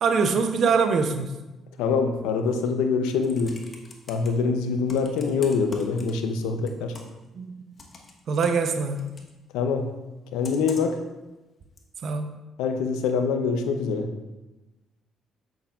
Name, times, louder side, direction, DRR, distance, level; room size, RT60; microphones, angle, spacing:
voice 1, 0.0-1.3 7.4-7.7 8.3-9.1 12.0-12.3, right 5 dB, 60° right, 7 dB, 0.7 m, -23 dB
voice 2, 1.8-3.6 4.1-6.9 9.5-9.9 10.3-11.0 12.6-14.1, left 5 dB, 80° left, 6 dB, 0.6 m, -24 dB
Computer keyboard, 2.9-4.3 4.9-6.4 6.7-7.3 7.8-9.3 10.4-11.0 11.8-11.9, left 3 dB, 45° left, 1.2 m, -44 dB
7.5 x 7.1 x 2.4 m, 1.1 s
hypercardioid pair, 50°, 0 cm